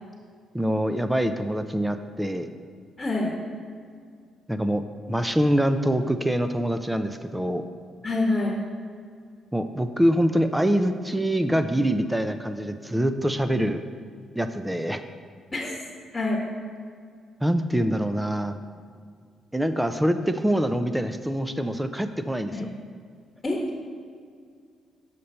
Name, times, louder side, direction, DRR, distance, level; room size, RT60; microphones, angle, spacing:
voice 1, 0.5-2.5 4.5-7.6 9.5-13.8 14.4-15.0 17.4-18.6 19.5-22.7, equal, 5° right, 9 dB, 0.4 m, -25 dB
voice 2, 3.0-3.3 8.0-8.6 15.5-15.8 16.1-16.4 22.5-22.7 23.4-23.6, left 2 dB, 25° left, -1 dB, 1.1 m, -26 dB
6.6 x 5.5 x 4.3 m, 2.2 s
cardioid pair, 90°, 0 cm